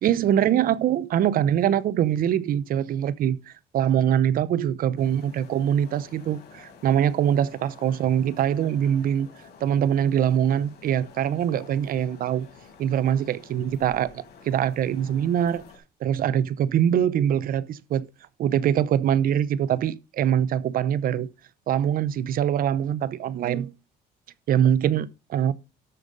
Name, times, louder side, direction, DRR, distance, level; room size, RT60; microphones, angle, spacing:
voice 1, 0.0-9.3 9.6-12.5 12.8-15.6 16.0-18.1 18.4-21.3 21.7-23.7 24.5-25.5, right 10 dB, 60° right, 0.7 m, -23 dB
sound 1, 5.0-15.8, left 5 dB, 70° left, 4.1 m, -50 dB
13.0 x 5.1 x 5.4 m
cardioid pair, 110°, 17 cm